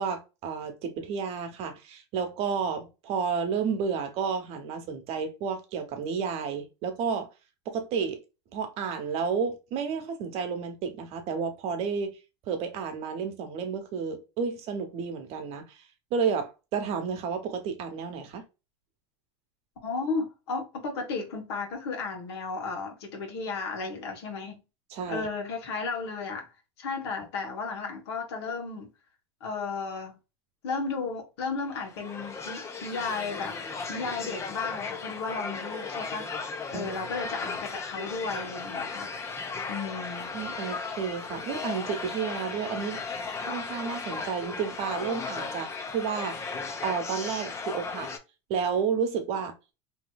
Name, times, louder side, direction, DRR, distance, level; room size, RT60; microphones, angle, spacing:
voice 1, 0.0-7.3 7.7-8.2 8.5-12.2 12.5-15.6 16.1-18.4 24.9-25.3 36.7-36.9 40.3-43.0 43.4-46.5 46.8-48.1 48.5-49.5, right 6 dB, 50° right, 0.9 m, -31 dB
voice 2, 19.8-24.6 25.1-26.5 26.8-28.9 29.4-30.1 30.6-33.6 33.9-39.1 39.7-40.4, left 4 dB, 85° left, 1.2 m, -34 dB
sound 1, 31.7-48.2, left 4 dB, 20° left, 0.5 m, -36 dB
3.1 x 2.8 x 2.2 m
supercardioid pair, 130°, 13 cm